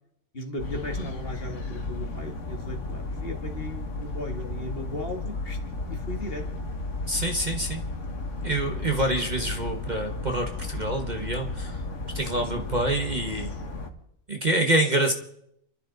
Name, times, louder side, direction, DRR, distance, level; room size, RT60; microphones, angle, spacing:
voice 1, 0.3-5.6 5.9-6.4 8.9-9.1 12.2-12.5, left 1 dB, 40° left, 3 dB, 2.1 m, -37 dB
sound 1, 0.6-13.9, left 2 dB, 60° left, 1.9 m, -34 dB
voice 2, 7.1-7.8 8.4-11.8 12.1-13.6 14.3-15.1, right 1 dB, 35° right, 3 dB, 1.3 m, -26 dB
29.0 x 12.0 x 4.0 m, 0.75 s
omnidirectional pair, 1.5 m